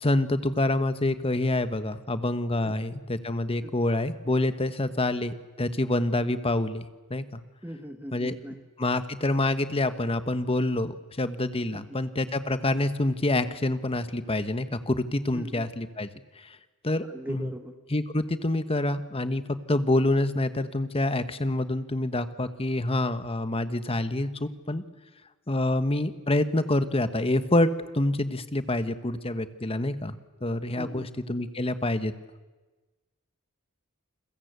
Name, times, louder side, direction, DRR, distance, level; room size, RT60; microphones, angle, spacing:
voice 1, 0.0-7.4 8.1-8.4 8.8-16.1 16.4-16.6 16.8-17.5 17.9-24.8 25.5-30.1 30.4-32.1, left 1 dB, 30° left, 11 dB, 1.3 m, -27 dB
voice 2, 7.6-8.6 11.7-12.0 15.3-15.7 17.1-17.7 30.7-31.1, equal, 10° right, 7 dB, 1.3 m, -39 dB
29.0 x 22.0 x 8.2 m, 1.2 s
head